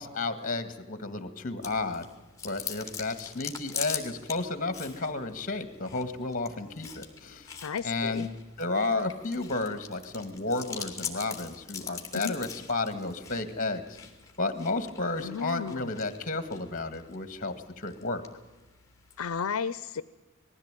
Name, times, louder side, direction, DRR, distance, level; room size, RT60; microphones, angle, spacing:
voice 1, 0.0-2.1 2.4-7.5 7.8-14.0 14.4-18.2, left 3 dB, 40° left, 11 dB, 1.9 m, -32 dB
Chewing mastication, 1.6-19.2, left 7 dB, 15° left, 2.6 m, -43 dB
voice 2, 7.6-8.3 12.1-12.4 15.2-15.9 19.2-20.0, left 6 dB, 80° left, 15 dB, 0.6 m, -33 dB
20.5 x 15.0 x 9.0 m, 1.2 s
head